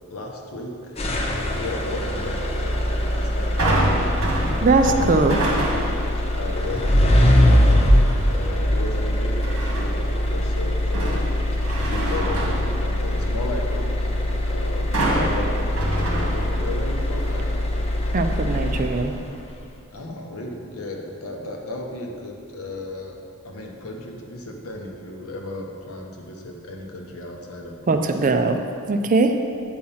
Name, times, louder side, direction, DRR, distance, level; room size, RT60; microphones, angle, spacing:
voice 1, 0.1-1.0 1.6-5.4 6.4-7.9 8.3-11.3 11.8-17.7 19.9-23.2 23.4-28.2, left 2 dB, 70° left, 1 dB, 1.0 m, -35 dB
sound 1, 1.0-19.2, left 1 dB, 25° left, 0.7 m, -22 dB
sound 2, 3.6-6.1 6.6-7.0 9.4-10.1 10.6-13.4 14.9-16.9 17.2-17.3, right 1 dB, 65° right, 1.5 m, -26 dB
voice 2, 4.6-5.4 18.1-19.1 27.9-28.6 28.9-29.3, right 3 dB, 35° right, 6 dB, 0.4 m, -20 dB
8.5 x 4.5 x 5.6 m, 2.5 s
head